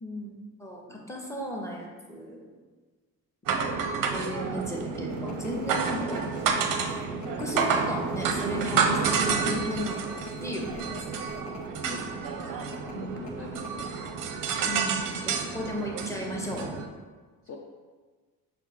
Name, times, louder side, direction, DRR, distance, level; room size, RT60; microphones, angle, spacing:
voice 1, 0.0-2.5 3.4-3.7 4.1-6.3 7.4-11.3 12.9-13.2 14.6-16.7, equal, 5° left, -1 dB, 0.8 m, -36 dB
sound 1, 3.5-16.9, right 5 dB, 45° right, 0.6 m, -29 dB
sound 2, 5.1-11.7 12.0-12.1 12.7-13.7, left 3 dB, 70° left, 0.7 m, -46 dB
voice 2, 11.8-12.1 12.8-13.9 17.4-17.6, left 4 dB, 30° left, 0 dB, 0.5 m, -43 dB
5.7 x 2.1 x 4.2 m, 1.4 s
hypercardioid pair, 60°, 49 cm